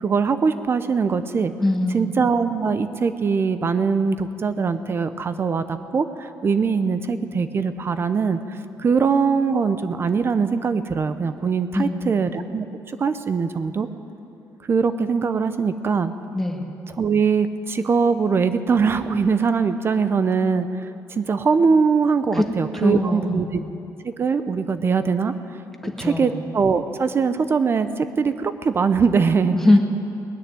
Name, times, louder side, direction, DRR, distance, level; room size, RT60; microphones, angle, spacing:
voice 1, 0.0-1.5 1.9-8.4 8.8-12.7 13.0-13.9 14.7-16.1 17.0-23.6 24.0-25.3 25.8-29.6, right 5 dB, 35° right, 11 dB, 0.7 m, -22 dB
voice 2, 1.6-2.1 11.7-12.2 16.3-16.7 22.3-22.4 22.7-23.6 25.8-26.3 29.5-29.8, left 2 dB, 5° left, 2 dB, 1.5 m, -21 dB
20.0 x 6.6 x 9.5 m, 2.8 s
cardioid pair, 125°, 7 cm